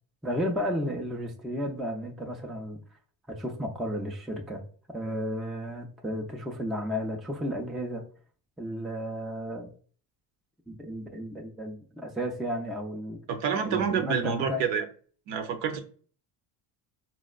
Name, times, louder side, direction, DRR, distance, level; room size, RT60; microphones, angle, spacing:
voice 1, 0.2-2.8 3.3-4.6 4.9-8.0 8.6-9.7 10.7-13.2 13.6-14.6, equal, ahead, 0.3 m, -33 dB
voice 2, 13.3-14.9 15.3-15.8, right 6 dB, 70° right, 0.7 m, -28 dB
4.2 x 2.1 x 2.3 m
supercardioid pair, 80°, 48 cm